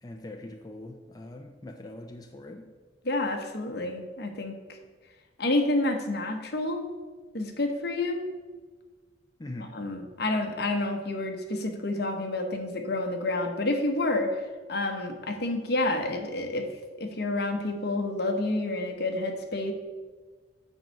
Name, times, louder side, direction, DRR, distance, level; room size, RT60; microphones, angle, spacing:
voice 1, 0.0-2.7 9.4-9.7, left 1 dB, 20° left, 4 dB, 0.4 m, -42 dB
voice 2, 3.0-4.5 5.4-6.9 7.3-8.2 9.7-14.3 14.7-16.7 17.0-19.7, left 2 dB, 60° left, 4 dB, 1.0 m, -29 dB
7.9 x 4.5 x 6.4 m, 1.4 s
head